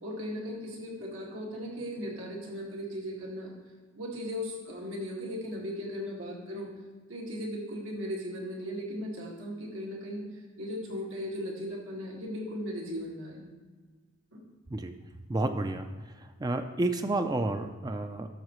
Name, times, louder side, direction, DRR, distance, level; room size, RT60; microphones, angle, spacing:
voice 1, 0.0-3.5 3.9-6.7 7.1-13.5 14.3-14.4, equal, 80° right, -2 dB, 1.9 m, -37 dB
voice 2, 15.3-15.9 16.2-18.3, right 2 dB, 20° right, 8 dB, 0.3 m, -30 dB
12.5 x 6.5 x 3.1 m, 1.4 s
head